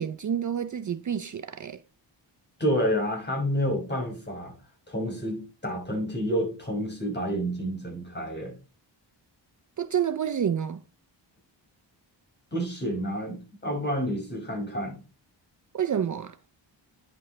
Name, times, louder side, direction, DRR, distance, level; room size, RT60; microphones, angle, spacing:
voice 1, 0.0-1.8 9.8-10.8 15.7-16.4, right 8 dB, 45° right, 0.6 m, -28 dB
voice 2, 2.6-4.5 4.9-8.5 12.5-15.0, equal, 25° left, 5.8 m, -29 dB
10.0 x 8.3 x 3.2 m
wide cardioid pair, 115°, 44 cm